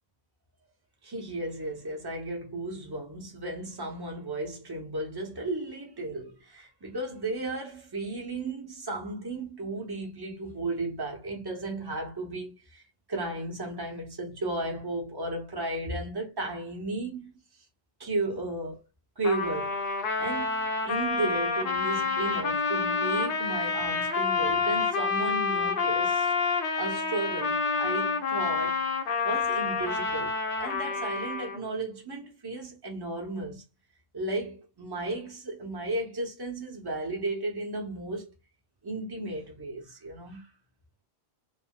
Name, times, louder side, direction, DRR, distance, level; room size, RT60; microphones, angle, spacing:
voice 1, 1.0-12.8 13.1-17.3 18.0-18.8 19.2-19.8 20.2-26.3 26.7-28.8 29.2-33.6 34.1-38.3 38.8-40.5, right 2 dB, 25° right, 0.8 m, -34 dB
Trumpet, 19.2-31.7, left 4 dB, 60° left, 0.8 m, -28 dB
3.5 x 2.1 x 2.3 m
omnidirectional pair, 1.1 m